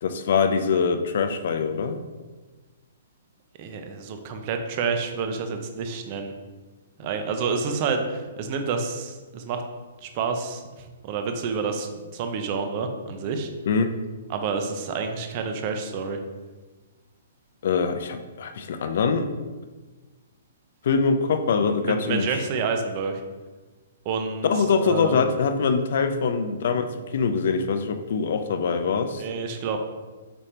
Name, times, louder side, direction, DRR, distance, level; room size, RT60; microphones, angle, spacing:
voice 1, 0.0-2.0 13.7-13.9 17.6-19.3 20.8-22.4 24.4-29.2, left 5 dB, 50° left, 8 dB, 0.4 m, -23 dB
voice 2, 3.6-6.3 7.0-9.6 10.0-13.5 14.3-16.2 21.8-23.2 24.1-25.2 26.2-26.3 28.9-29.8, right 5 dB, 30° right, 6 dB, 0.4 m, -29 dB
5.1 x 2.8 x 3.2 m, 1.3 s
hypercardioid pair, 170°, 0 cm